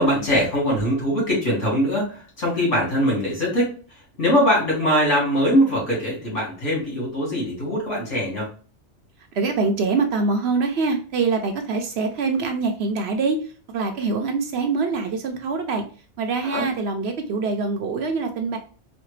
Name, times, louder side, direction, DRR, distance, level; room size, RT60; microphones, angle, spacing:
voice 1, 0.0-3.7 4.2-8.5 16.4-16.7, equal, 70° left, -4 dB, 2.3 m, -22 dB
voice 2, 9.3-13.4 13.7-15.8 16.2-18.6, right 4 dB, 65° right, 5 dB, 0.8 m, -24 dB
4.2 x 2.1 x 3.1 m, 0.39 s
omnidirectional pair, 1.3 m